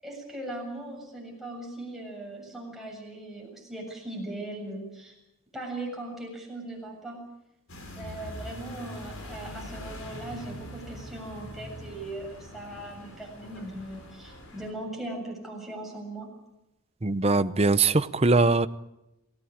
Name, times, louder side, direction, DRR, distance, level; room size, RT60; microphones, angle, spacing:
voice 1, 0.0-5.1 5.5-7.2 7.9-16.3, right 1 dB, ahead, -2 dB, 7.4 m, -39 dB
sound 1, 7.7-14.7, equal, 65° left, 5.6 m, -43 dB
voice 2, 17.0-18.7, right 3 dB, 30° right, 13 dB, 0.7 m, -22 dB
27.5 x 16.0 x 8.7 m, 0.91 s
head